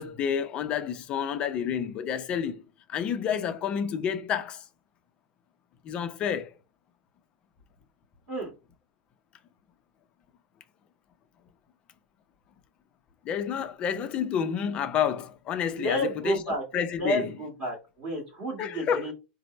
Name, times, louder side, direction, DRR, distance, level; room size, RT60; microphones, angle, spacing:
voice 1, 0.0-2.6 2.9-4.6 5.8-6.6 13.2-16.4 16.7-17.3 18.6-19.1, left 8 dB, 25° left, 0.5 m, -29 dB
voice 2, 15.8-16.6 17.0-19.1, right 1 dB, 20° right, 1.7 m, -31 dB
4.2 x 2.0 x 3.9 m
supercardioid pair, 165°, 4 cm